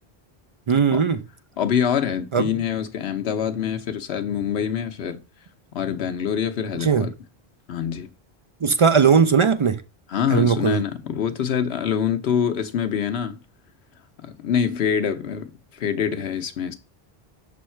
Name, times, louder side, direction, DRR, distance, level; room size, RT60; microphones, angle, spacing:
voice 1, 0.7-1.2 2.3-2.5 6.7-7.1 8.6-9.8 10.3-10.8, right 6 dB, 55° right, 0.3 m, -18 dB
voice 2, 1.6-5.2 5.7-7.1 7.7-8.1 10.1-13.4 14.2-16.7, left 8 dB, 90° left, 1.1 m, -25 dB
6.4 x 3.5 x 4.3 m
omnidirectional pair, 1.0 m